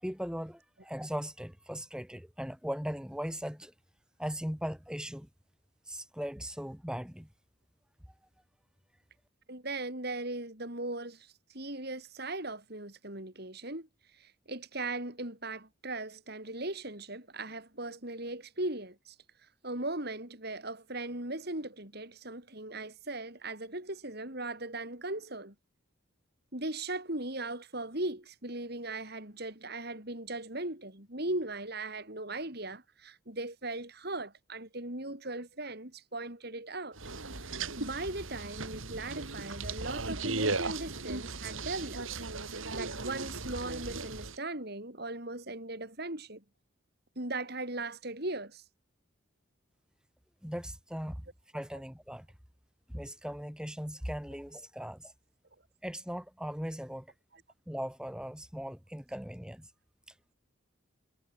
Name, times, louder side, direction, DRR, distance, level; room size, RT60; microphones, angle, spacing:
voice 1, 0.0-3.7 4.2-5.3 5.9-7.3 50.4-51.2 51.5-52.3 52.9-55.1 55.8-57.1 57.7-59.7, equal, 5° right, 4.9 m, -38 dB
voice 2, 9.5-13.9 14.1-19.2 19.6-25.5 26.5-37.0 37.4-42.0 42.7-46.4 47.2-48.6 57.3-57.4, right 2 dB, 50° right, 5.4 m, -38 dB
sound 1, 37.0-44.4, right 3 dB, 80° right, 3.8 m, -37 dB
head